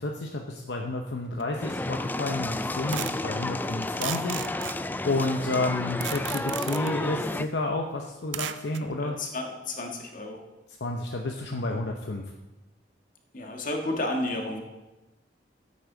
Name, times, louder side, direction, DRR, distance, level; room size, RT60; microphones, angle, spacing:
voice 1, 0.0-4.7 5.0-9.2 10.8-12.2, left 2 dB, 65° left, 2 dB, 0.8 m, -30 dB
sound 1, 1.4-1.5 2.9-3.3 3.8-5.3 6.0-7.0 8.3-8.8, right 10 dB, 80° right, 0.5 m, -35 dB
sound 2, 1.5-7.5, left 2 dB, 10° left, 0.3 m, -31 dB
voice 2, 9.0-10.4 13.3-14.6, left 2 dB, 50° left, 2 dB, 1.6 m, -32 dB
14.0 x 8.5 x 3.9 m, 1.1 s
head